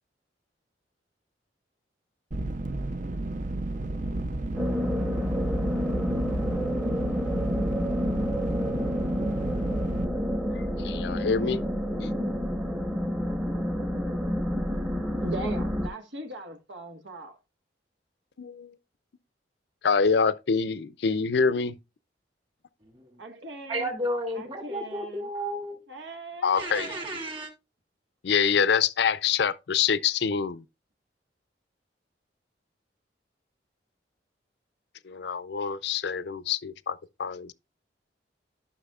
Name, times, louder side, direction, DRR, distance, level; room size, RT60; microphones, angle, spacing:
sound 1, 2.3-10.1, right 2 dB, 45° right, 0.6 m, -32 dB
sound 2, 4.5-15.9, equal, 10° right, 0.9 m, -29 dB
voice 1, 10.5-11.6 12.0-12.1 18.4-18.7 19.8-21.8 26.4-27.0 28.2-30.6 35.1-37.5, left 6 dB, 70° left, 0.5 m, -26 dB
voice 2, 15.2-17.4 23.2-23.9 24.3-25.3 25.9-27.1, right 2 dB, 80° right, 1.5 m, -39 dB
voice 3, 23.7-25.8 26.6-27.5, right 1 dB, 30° right, 2.4 m, -32 dB
13.0 x 6.1 x 2.4 m
head